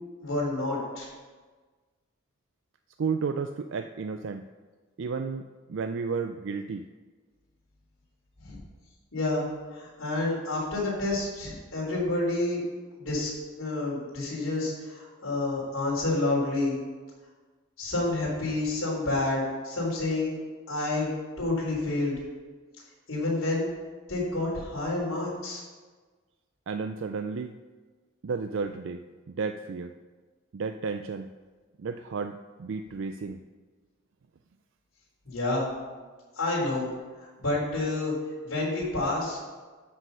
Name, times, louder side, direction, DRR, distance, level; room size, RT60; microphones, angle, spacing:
voice 1, 0.2-1.1 8.4-8.6 9.1-9.5 9.7-12.6 13.0-13.3 13.6-16.8 17.8-20.3 20.7-21.1 21.4-22.1 23.1-23.7 24.1-25.6 35.2-35.7 36.4-36.9 37.4-38.1 38.4-39.4, left 2 dB, 70° left, -4 dB, 3.9 m, -29 dB
voice 2, 3.0-4.5 5.0-6.9 26.7-27.5 28.2-29.9 30.5-31.3 31.8-33.4, right 5 dB, 60° right, 8 dB, 0.4 m, -32 dB
13.0 x 6.2 x 5.6 m, 1.4 s
head